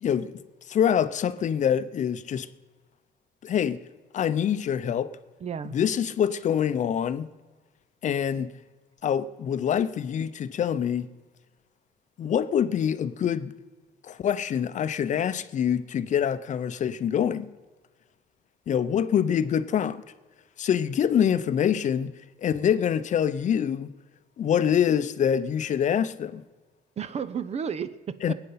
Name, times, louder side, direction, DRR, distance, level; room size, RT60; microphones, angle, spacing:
voice 1, 0.0-0.4 0.7-2.5 3.4-3.8 4.1-5.1 5.7-7.3 8.0-8.5 9.0-11.1 12.2-13.5 14.0-17.5 18.7-20.0 20.6-22.1 22.4-23.9 24.4-26.4 28.2-28.3, left 8 dB, 45° left, 0.7 m, -25 dB
voice 2, 5.4-5.8 27.0-28.3, right 7 dB, 40° right, 0.8 m, -32 dB
21.0 x 8.9 x 5.8 m
cardioid pair, 110°, 17 cm